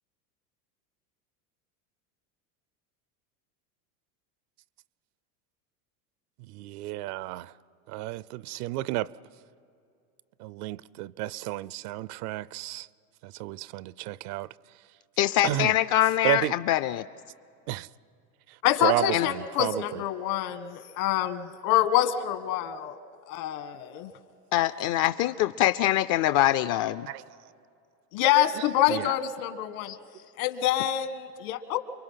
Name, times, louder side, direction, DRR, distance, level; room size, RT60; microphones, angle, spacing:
voice 1, 6.5-7.5 7.9-9.1 10.4-12.9 13.2-14.5 15.4-15.7 16.2-16.5 17.7-17.9 18.8-20.0 27.1-27.2 28.9-29.1, right 16 dB, 70° right, 0.7 m, -32 dB
voice 2, 15.2-17.0 19.1-19.3 24.5-27.1 29.9-30.0, left 13 dB, 45° left, 0.5 m, -24 dB
voice 3, 18.6-23.0 23.3-24.1 28.1-29.9 30.4-31.8, left 11 dB, 70° left, 1.6 m, -26 dB
29.5 x 23.5 x 5.7 m
supercardioid pair, 110°, 46 cm